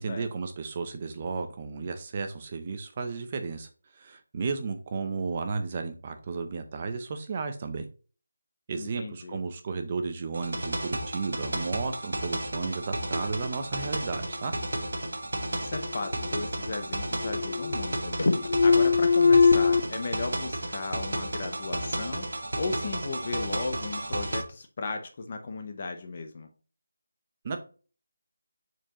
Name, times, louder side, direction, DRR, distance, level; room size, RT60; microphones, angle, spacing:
voice 1, 0.0-3.7 4.0-7.9 8.7-14.5 27.4-27.6, right 4 dB, 20° right, 7 dB, 0.6 m, -33 dB
voice 2, 8.7-9.4 15.5-18.2 18.6-26.5, left 3 dB, 25° left, 5 dB, 0.7 m, -36 dB
sound 1, 10.3-24.4, right 1 dB, 70° right, 1.3 m, -33 dB
sound 2, 15.7-16.7 17.0-17.9 18.2-19.8, left 5 dB, 70° left, 0.7 m, -22 dB
7.1 x 4.5 x 2.9 m, 0.37 s
figure-of-eight pair, 175°, 0 cm